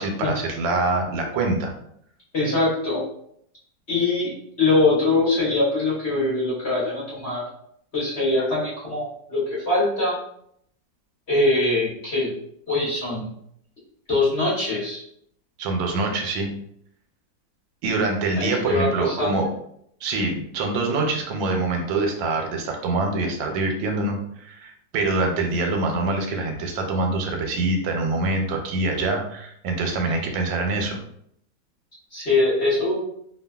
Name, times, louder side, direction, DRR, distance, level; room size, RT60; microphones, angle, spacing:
voice 1, 0.0-1.7 15.6-16.6 17.8-19.5 20.0-31.0, right 3 dB, 85° right, 3 dB, 1.3 m, -25 dB
voice 2, 2.3-3.0 3.9-4.3 4.6-7.4 7.9-9.4 9.7-10.1 11.3-12.3 12.7-13.3 14.1-15.0 18.4-19.3 30.1-30.2 32.1-33.0, left 2 dB, 45° left, -8 dB, 0.9 m, -22 dB
2.8 x 2.4 x 2.2 m, 0.71 s
omnidirectional pair, 2.0 m